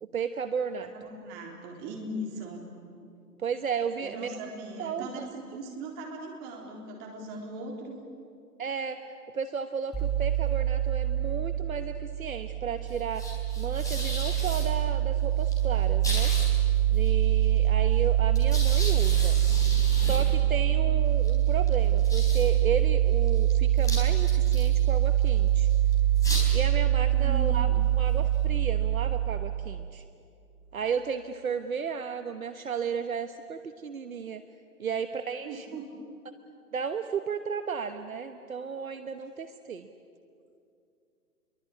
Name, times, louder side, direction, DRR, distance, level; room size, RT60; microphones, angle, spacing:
voice 1, 0.0-0.9 3.4-4.4 4.8-5.2 8.6-9.0 9.3-13.3 13.6-16.3 16.9-19.4 20.0-25.7 26.5-27.7 28.0-30.0 30.7-34.4 34.8-35.7 36.7-39.9, right 6 dB, 60° right, 9 dB, 1.3 m, -34 dB
voice 2, 0.8-2.7 4.0-8.0 27.0-27.8 35.4-35.9, right 1 dB, 20° right, 0 dB, 3.8 m, -40 dB
sound 1, 9.9-29.8, right 11 dB, 5° left, 4.3 m, -24 dB
29.5 x 23.0 x 8.6 m, 2.5 s
figure-of-eight pair, 135°, 48 cm